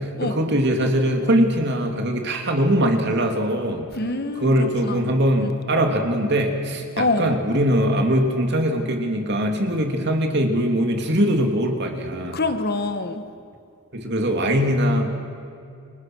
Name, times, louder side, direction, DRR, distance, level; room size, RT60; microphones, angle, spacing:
voice 1, 0.2-3.8 4.4-12.4 13.9-15.1, equal, 50° right, 3 dB, 3.0 m, -21 dB
voice 2, 3.9-5.0 5.4-5.5 7.0-7.4 12.3-13.2, left 2 dB, 45° left, 9 dB, 1.5 m, -25 dB
30.0 x 24.0 x 6.4 m, 2.5 s
head